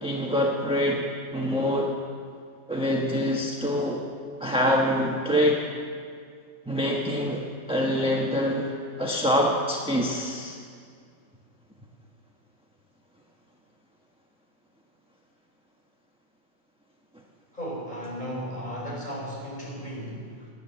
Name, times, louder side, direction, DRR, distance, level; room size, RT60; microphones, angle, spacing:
voice 1, 0.0-1.9 2.7-4.0 4.4-5.6 6.7-8.7 9.0-10.6, equal, 5° right, -2 dB, 1.2 m, -25 dB
voice 2, 17.5-20.5, equal, 35° left, -4 dB, 4.6 m, -35 dB
18.5 x 9.2 x 6.9 m, 2.2 s
omnidirectional pair, 1.3 m